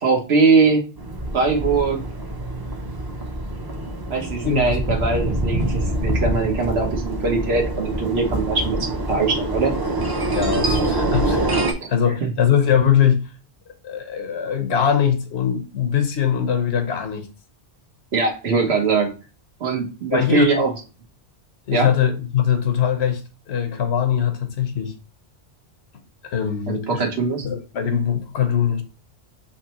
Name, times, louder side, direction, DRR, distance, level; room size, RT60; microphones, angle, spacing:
voice 1, 0.0-0.8 1.3-2.0 4.1-9.7 12.2-12.3 18.1-19.1 19.6-20.7 21.7-21.9 26.7-27.4, right 4 dB, 80° right, 1.3 m, -21 dB
sound 1, 1.0-11.7, right 1 dB, 25° right, 0.6 m, -25 dB
voice 2, 10.3-13.3 13.7-17.3 20.1-20.5 21.7-23.2 23.5-24.9 26.3-27.0 27.4-28.8, left 8 dB, 85° left, 1.1 m, -21 dB
5.6 x 3.2 x 2.9 m
omnidirectional pair, 1.1 m